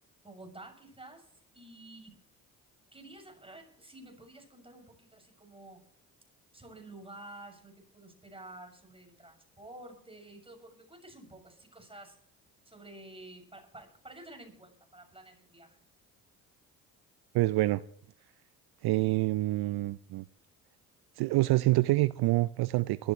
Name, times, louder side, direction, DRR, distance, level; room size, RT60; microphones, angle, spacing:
voice 1, 0.2-1.3 1.5-2.2 2.9-5.8 6.5-12.2 12.6-15.8, right 2 dB, 15° right, 6.8 m, -50 dB
voice 2, 17.3-17.8 18.8-20.2 21.2-23.1, right 18 dB, 65° right, 0.6 m, -26 dB
22.5 x 13.5 x 3.2 m
hypercardioid pair, 50°, 41 cm